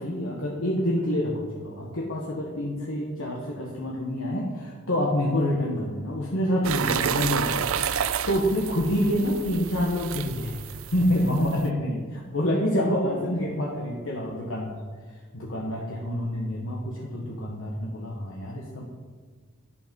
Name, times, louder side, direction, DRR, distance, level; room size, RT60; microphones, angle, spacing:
voice 1, 0.0-7.8 8.3-14.8 15.3-18.8, equal, 65° left, -2 dB, 1.4 m, -27 dB
sound 1, 6.6-11.7, right 8 dB, 70° right, 0.5 m, -30 dB
11.5 x 8.3 x 5.3 m, 1.5 s
head